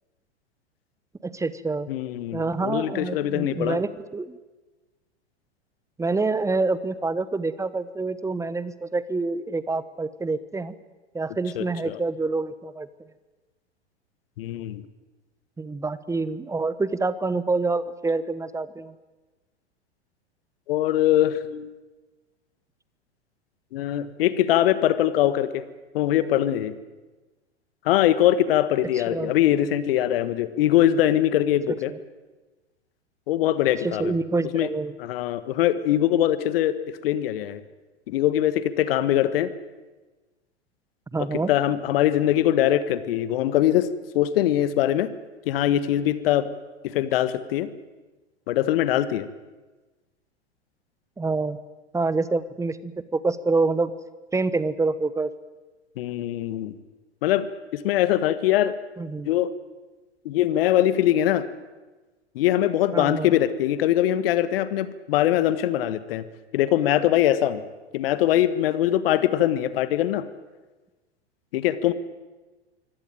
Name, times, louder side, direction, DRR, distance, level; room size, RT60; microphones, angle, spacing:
voice 1, 1.2-1.9 2.3-4.4 6.0-10.7 11.1-12.9 15.6-18.9 28.9-29.3 31.9-32.0 33.8-34.9 41.1-41.5 51.2-51.6 51.9-53.9 54.3-55.3 59.0-59.3 62.9-63.4, right 3 dB, 10° right, 16 dB, 1.1 m, -27 dB
voice 2, 1.9-3.8 11.6-12.0 14.4-14.8 20.7-21.7 23.7-25.6 25.9-26.7 27.8-31.9 33.3-34.1 34.5-34.7 35.0-37.6 38.1-39.5 41.5-43.9 44.1-45.1 45.4-46.5 46.8-47.7 48.5-49.3 56.0-56.7 57.2-57.5 57.7-58.8 59.2-59.5 60.2-61.4 62.3-66.2 66.5-67.6 67.9-70.2 71.5-71.9, left 12 dB, 55° left, 14 dB, 1.5 m, -22 dB
24.0 x 17.0 x 9.1 m, 1.2 s
figure-of-eight pair, 95°, 34 cm